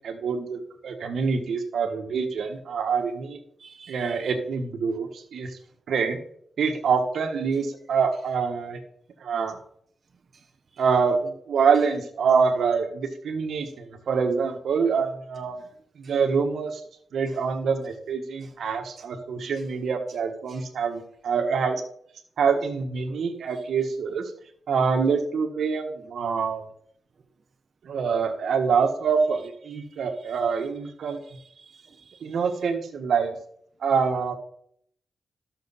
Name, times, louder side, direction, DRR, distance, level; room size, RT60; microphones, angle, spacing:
voice 1, 0.0-3.4 3.9-5.6 5.9-6.2 6.6-8.8 9.2-9.6 10.8-15.6 16.0-16.8 17.1-21.8 22.4-24.3 24.7-26.7 27.8-31.2 32.2-33.4 33.8-34.3, right 5 dB, 80° right, 1.4 m, -25 dB
voice 2, 3.6-4.3 10.3-10.8 13.6-13.7 16.0-16.1 17.3-17.4 18.4-18.6 20.5-20.6 23.1-23.2 29.7-30.4 31.1-32.4, right 5 dB, 55° right, 0.8 m, -53 dB
13.5 x 6.7 x 4.1 m
cardioid pair, 70°, 0 cm